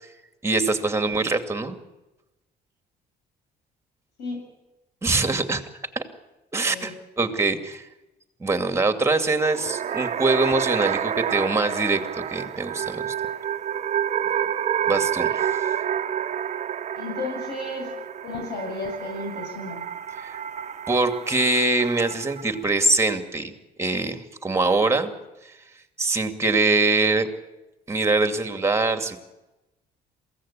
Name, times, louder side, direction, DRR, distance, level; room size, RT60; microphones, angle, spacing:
voice 1, 0.4-1.8 5.0-5.6 5.9-6.0 6.5-7.9 8.4-13.1 14.9-15.5 20.2-20.4 20.9-23.5 23.8-25.1 25.4-25.5 26.0-27.3 27.9-29.2, right 3 dB, 15° right, 8 dB, 2.5 m, -23 dB
voice 2, 6.6-6.9 14.8-15.1 17.0-17.9 18.2-19.8, left 2 dB, 75° left, 1 dB, 7.5 m, -33 dB
sound 1, 9.2-22.6, right 9 dB, 40° right, 1.0 m, -29 dB
23.0 x 16.5 x 8.7 m, 1.0 s
cardioid pair, 110°, 17 cm